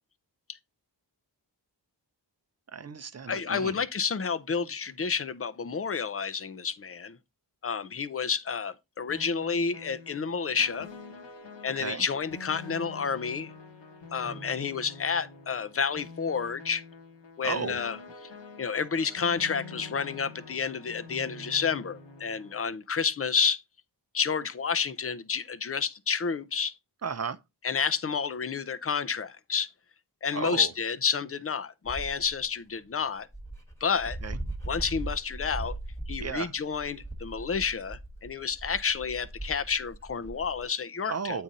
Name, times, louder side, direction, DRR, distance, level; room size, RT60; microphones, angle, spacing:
voice 1, 2.7-3.7 11.8-12.0 17.4-17.8 27.0-27.4 30.3-30.7 34.2-34.4 36.2-36.5 41.1-41.4, right 5 dB, 35° right, 0.6 m, -33 dB
voice 2, 3.3-7.2 7.6-10.9 11.6-13.5 14.1-16.8 17.4-18.3 18.6-23.6 24.1-26.7 27.6-29.7 30.2-33.3 33.8-34.2 34.7-35.8 36.1-41.4, left 6 dB, 30° left, 0.5 m, -30 dB
sound 1, 9.1-22.6, left 3 dB, 70° left, 1.3 m, -46 dB
Dog, 31.9-32.4 33.0-33.1 33.3-40.6, right 1 dB, 5° left, 1.3 m, -39 dB
8.7 x 3.8 x 4.0 m
wide cardioid pair, 95°, 44 cm